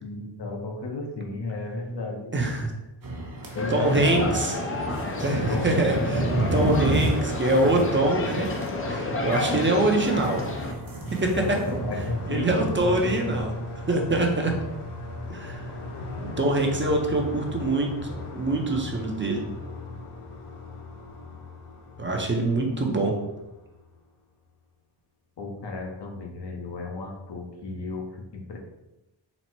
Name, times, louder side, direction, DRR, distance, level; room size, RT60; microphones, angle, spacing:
voice 1, 0.0-2.3 3.5-4.3 5.5-6.7 9.5-9.9 11.3-13.3 25.4-28.6, left 3 dB, 55° left, 1 dB, 0.8 m, -34 dB
voice 2, 2.3-2.7 3.7-4.5 5.2-6.2 6.5-8.5 8.8-10.4 11.1-11.4 12.3-13.5 13.9-14.6 15.3-15.6 16.2-18.0 18.3-19.4 22.0-23.1, right 2 dB, 25° right, 1 dB, 0.6 m, -24 dB
sound 1, 3.0-13.4, right 1 dB, 45° right, 0.9 m, -32 dB
sound 2, 3.6-10.7, left 2 dB, 30° left, 0.5 m, -30 dB
sound 3, 7.1-24.0, left 2 dB, 90° left, 0.7 m, -38 dB
4.1 x 2.1 x 4.4 m, 0.94 s
wide cardioid pair, 135°, 49 cm